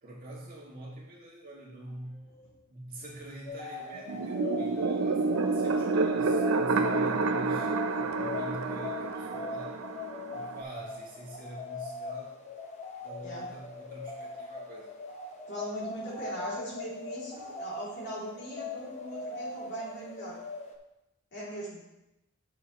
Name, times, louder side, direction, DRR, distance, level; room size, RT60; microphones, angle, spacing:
voice 1, 0.0-2.4 2.7-9.8 10.3-12.4 13.0-14.9, right 1 dB, 40° right, -5 dB, 2.1 m, -45 dB
sound 1, 3.5-20.8, left 3 dB, 30° left, 0.9 m, -41 dB
sound 2, 4.1-10.6, right 3 dB, 70° right, 0.5 m, -29 dB
voice 2, 15.5-20.4 21.3-21.8, right 1 dB, 55° left, -5 dB, 2.8 m, -40 dB
9.3 x 6.7 x 3.0 m, 0.93 s
head